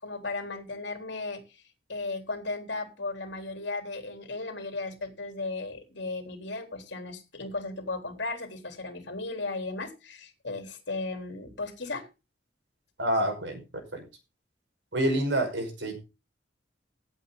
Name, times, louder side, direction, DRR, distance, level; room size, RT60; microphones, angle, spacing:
voice 1, 0.0-1.6 1.9-12.1, left 3 dB, 70° left, 5 dB, 3.9 m, -36 dB
voice 2, 13.0-13.6 13.9-14.0 14.9-16.0, right 1 dB, 75° right, 6 dB, 5.4 m, -27 dB
17.0 x 8.6 x 3.9 m, 0.29 s
head